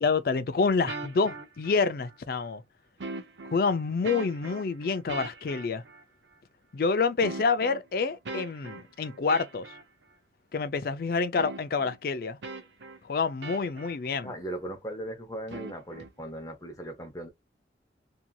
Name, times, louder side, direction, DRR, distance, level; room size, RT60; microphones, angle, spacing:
voice 1, 0.0-2.6 3.5-5.8 6.7-9.7 10.5-12.4 13.0-14.3, left 4 dB, 55° left, 0.4 m, -27 dB
sound 1, 0.9-2.2 3.0-6.0 7.2-9.8 11.4-12.0 12.4-14.0 15.5-16.1, right 3 dB, 90° right, 0.6 m, -40 dB
voice 2, 14.2-17.3, right 1 dB, 20° left, 0.8 m, -38 dB
2.8 x 2.6 x 2.2 m
head